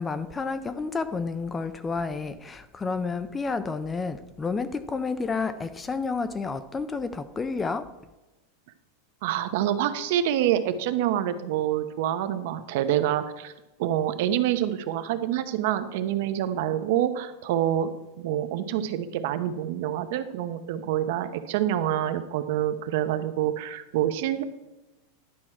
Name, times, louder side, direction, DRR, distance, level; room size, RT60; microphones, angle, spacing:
voice 1, 0.0-7.9, left 4 dB, 10° left, 0.3 m, -30 dB
voice 2, 9.2-13.5 13.8-24.4, right 11 dB, 55° right, 0.8 m, -27 dB
11.5 x 6.1 x 4.4 m
supercardioid pair, 165°, 0 cm